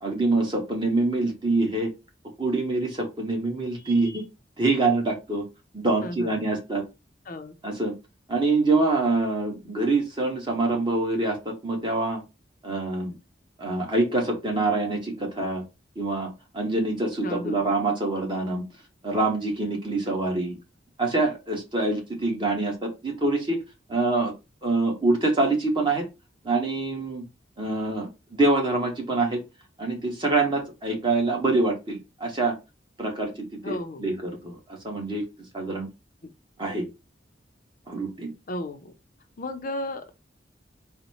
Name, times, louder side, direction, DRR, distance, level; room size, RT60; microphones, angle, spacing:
voice 1, 0.0-1.9 2.4-4.2 4.6-5.4 5.7-6.8 7.6-7.9 8.3-12.2 12.6-13.1 13.6-15.6 16.0-18.6 19.0-20.5 21.0-23.6 23.9-24.3 24.6-26.0 26.4-27.2 27.6-29.4 29.8-32.5 33.0-33.3 33.6-34.6 34.8-35.2 35.5-35.9 36.6-36.9 37.9-38.3, right 2 dB, 25° right, 1.3 m, -25 dB
voice 2, 6.0-6.3 7.3-7.5 17.2-17.7 33.6-34.1 38.5-38.9 39.4-40.1, left 1 dB, 50° left, 0.6 m, -34 dB
4.0 x 2.1 x 4.2 m
head